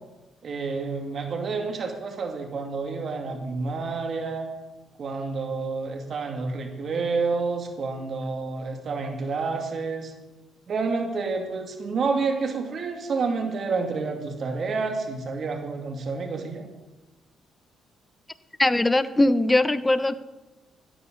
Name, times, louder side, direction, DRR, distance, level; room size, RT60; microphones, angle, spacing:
voice 1, 0.4-4.5 5.0-10.1 10.7-16.7, right 4 dB, 55° right, 3 dB, 2.4 m, -29 dB
voice 2, 18.6-20.3, left 1 dB, 15° left, 14 dB, 0.8 m, -21 dB
16.0 x 13.0 x 4.0 m, 1.1 s
supercardioid pair, 70°, 0 cm